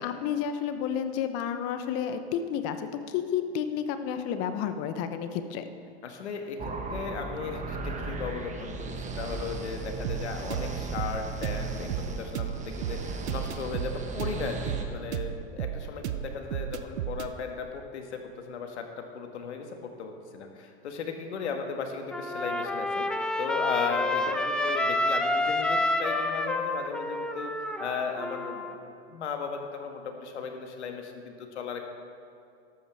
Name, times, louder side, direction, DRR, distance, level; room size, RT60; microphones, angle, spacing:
voice 1, 0.0-5.6, left 8 dB, 45° left, 9 dB, 1.0 m, -31 dB
voice 2, 6.0-23.1 23.4-31.8, left 5 dB, 80° left, 4 dB, 1.6 m, -36 dB
sound 1, 6.6-14.8, right 3 dB, 20° right, 1.3 m, -36 dB
sound 2, 10.0-17.3, right 11 dB, 75° right, 0.8 m, -34 dB
Trumpet, 22.1-28.7, left 2 dB, 5° left, 0.5 m, -29 dB
13.0 x 12.5 x 3.5 m, 2.4 s
hypercardioid pair, 105°, 34 cm